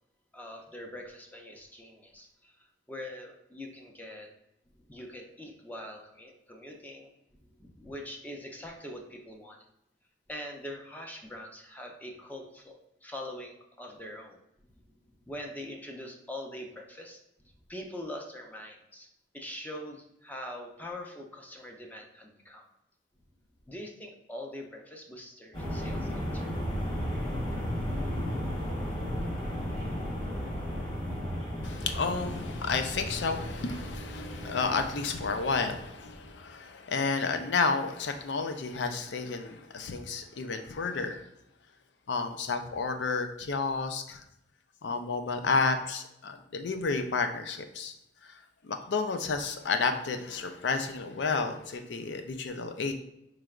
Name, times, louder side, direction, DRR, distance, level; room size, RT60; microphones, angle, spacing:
voice 1, 0.3-4.3 4.7-9.6 10.3-14.4 14.7-19.1 19.3-22.7 23.7-26.5, left 1 dB, 10° left, 1 dB, 0.5 m, -43 dB
sound 1, 25.5-36.4, equal, 25° left, 1.2 m, -34 dB
voice 2, 31.6-41.2 42.1-44.2 44.8-47.9 48.2-48.3 48.6-52.9, left 4 dB, 80° left, 7 dB, 0.5 m, -31 dB
4.9 x 3.2 x 2.4 m, 0.83 s
head